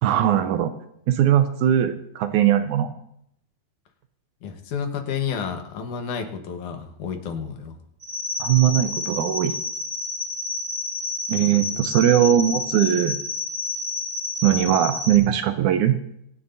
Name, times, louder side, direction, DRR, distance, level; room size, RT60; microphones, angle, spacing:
voice 1, 0.0-0.7 1.1-2.9 8.4-9.5 11.3-13.2 14.4-16.0, right 10 dB, 75° right, 9 dB, 2.0 m, -20 dB
voice 2, 4.4-7.8, left 7 dB, 70° left, 5 dB, 2.6 m, -30 dB
sound 1, 8.0-15.2, left 3 dB, 45° right, 1.2 m, -30 dB
25.5 x 9.6 x 2.7 m, 0.74 s
omnidirectional pair, 3.8 m